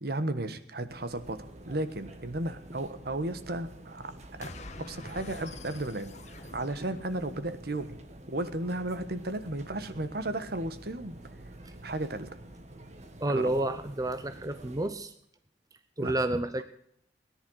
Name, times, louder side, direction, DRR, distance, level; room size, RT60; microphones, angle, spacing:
voice 1, 0.0-4.1 4.4-4.5 4.8-8.0 8.3-11.2 11.8-12.3 13.3-13.6 16.0-16.1, right 1 dB, 60° right, 11 dB, 1.3 m, -34 dB
sound 1, 0.9-14.9, right 1 dB, 40° right, 1.7 m, -48 dB
sound 2, 4.4-7.8, left 2 dB, 40° left, 1.4 m, -46 dB
voice 2, 13.2-15.1 16.0-16.6, right 1 dB, 20° right, 10 dB, 0.8 m, -30 dB
18.0 x 10.5 x 6.4 m, 0.70 s
head